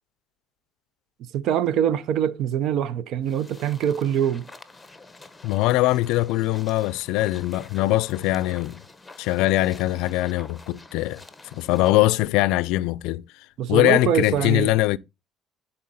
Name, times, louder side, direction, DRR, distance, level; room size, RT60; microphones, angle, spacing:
voice 1, 1.2-4.5 13.6-14.7, right 9 dB, 70° right, 0.7 m, -24 dB
sound 1, 3.2-12.0, left 2 dB, 10° left, 1.0 m, -48 dB
voice 2, 5.4-8.8 9.2-11.2 11.5-13.2 13.7-15.0, left 17 dB, 85° left, 0.4 m, -22 dB
10.5 x 4.3 x 4.1 m
cardioid pair, 95°, 0 cm